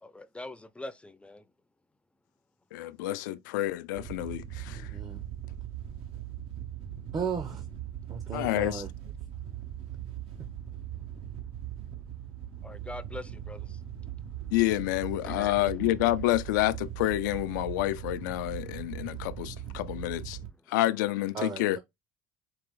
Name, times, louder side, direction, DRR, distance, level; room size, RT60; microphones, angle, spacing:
voice 1, 0.0-1.4 12.6-13.8 15.2-15.7 20.4-20.6, left 2 dB, 10° left, 0.5 m, -43 dB
voice 2, 2.7-4.8 8.3-8.8 14.5-20.4 20.7-21.8, left 15 dB, 90° left, 0.4 m, -28 dB
Wind / Boat Water vehicle, 3.9-20.5, right 11 dB, 65° right, 1.2 m, -40 dB
voice 3, 4.7-5.2 7.1-7.6 8.1-8.9 21.3-21.8, right 6 dB, 40° right, 1.0 m, -35 dB
4.8 x 2.5 x 3.7 m
supercardioid pair, 80°, 10 cm